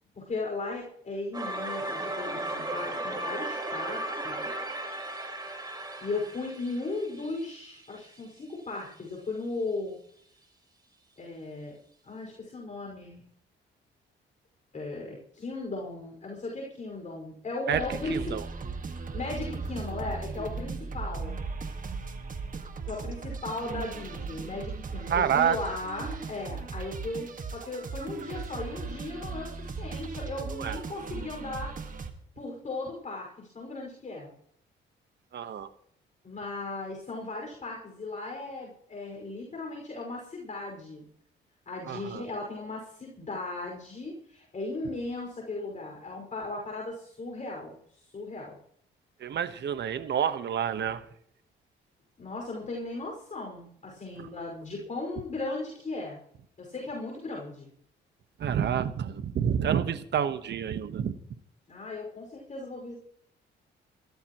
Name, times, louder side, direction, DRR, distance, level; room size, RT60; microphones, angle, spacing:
voice 1, 0.1-4.6 6.0-10.0 11.2-11.8 12.0-13.3 14.7-18.4 19.1-21.4 22.8-31.7 32.4-34.3 36.2-41.1 41.7-48.6 52.2-56.2 56.6-57.7 61.7-62.9, left 2 dB, 35° left, -1 dB, 5.6 m, -37 dB
sound 1, 1.3-8.2, right 1 dB, 20° right, 3.5 m, -36 dB
sound 2, 17.7-32.1, right 4 dB, 40° right, 1.8 m, -37 dB
voice 2, 18.1-18.4 25.1-25.6 30.5-30.8 35.3-35.7 41.9-42.2 49.2-51.0 58.4-61.1, right 8 dB, 60° right, 11 dB, 1.3 m, -28 dB
23.5 x 13.5 x 3.1 m, 0.65 s
cardioid pair, 90°, 20 cm